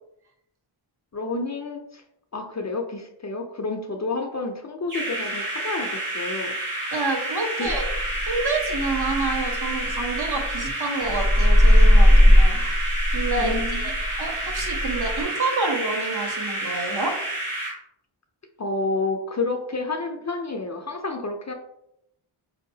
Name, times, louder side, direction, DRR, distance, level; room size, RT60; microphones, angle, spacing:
voice 1, 1.1-2.0 2.3-6.5 7.6-7.7 13.4-14.0 18.6-21.5, left 3 dB, 35° left, 3 dB, 0.5 m, -29 dB
sound 1, 4.9-17.7, right 1 dB, 85° right, 1.4 m, -30 dB
voice 2, 6.9-7.9 8.3-12.6 13.1-13.9 14.2-17.1, right 3 dB, 50° right, 2 dB, 0.9 m, -28 dB
sound 2, 7.7-10.7 11.0-15.2, equal, 25° right, 0.6 m, -19 dB
4.4 x 2.8 x 2.7 m, 0.79 s
wide cardioid pair, 70°, 49 cm